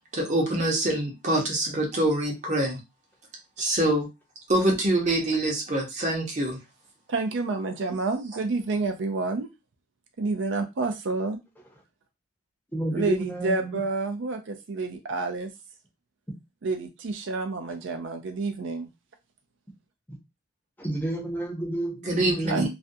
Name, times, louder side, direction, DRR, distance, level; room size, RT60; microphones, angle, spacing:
voice 1, 0.1-2.8 3.6-4.1 4.5-6.6 22.1-22.7, right 1 dB, 40° right, 0 dB, 0.7 m, -25 dB
voice 2, 7.1-9.5 10.2-11.4 12.9-15.5 16.6-18.9 22.5-22.7, right 3 dB, 75° right, 5 dB, 0.4 m, -29 dB
voice 3, 12.7-13.8 20.8-22.7, right 1 dB, 10° left, -1 dB, 0.6 m, -30 dB
2.4 x 2.2 x 2.6 m, 0.24 s
head